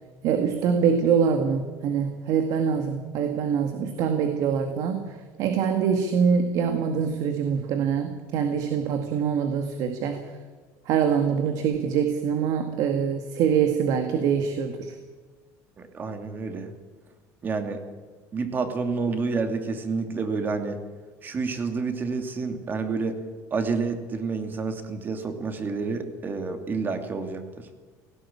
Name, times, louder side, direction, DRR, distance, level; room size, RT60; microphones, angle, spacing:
voice 1, 0.2-10.2 10.9-15.0, right 7 dB, 60° right, 6 dB, 2.0 m, -24 dB
voice 2, 15.8-16.7 17.4-17.8 18.3-20.8 21.2-23.2 23.5-27.7, right 4 dB, 25° right, 7 dB, 2.6 m, -29 dB
18.0 x 16.5 x 8.7 m, 1.4 s
cardioid pair, 145°, 7 cm